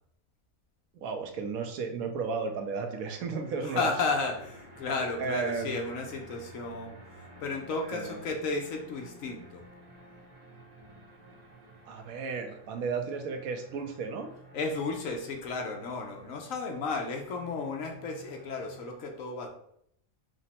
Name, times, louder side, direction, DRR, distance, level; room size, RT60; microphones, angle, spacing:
voice 1, 0.9-3.9 5.2-5.8 7.9-8.2 11.9-14.3, right 5 dB, 90° right, 6 dB, 1.1 m, -34 dB
sound 1, 2.1-18.9, right 1 dB, 35° right, 0.8 m, -52 dB
voice 2, 3.6-9.6 14.5-19.5, left 3 dB, 75° left, 3 dB, 1.2 m, -33 dB
5.0 x 2.2 x 4.1 m, 0.70 s
omnidirectional pair, 1.4 m